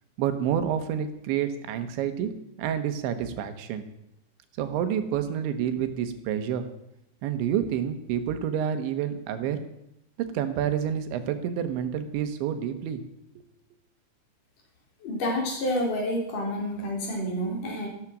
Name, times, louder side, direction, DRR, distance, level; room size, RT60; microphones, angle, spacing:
voice 1, 0.2-2.3 2.6-3.9 4.6-6.7 7.2-9.6 10.3-13.0, right 9 dB, 90° right, 8 dB, 3.7 m, -28 dB
voice 2, 15.0-17.9, equal, 50° left, -1 dB, 5.2 m, -29 dB
14.0 x 13.0 x 6.1 m, 0.82 s
omnidirectional pair, 5.1 m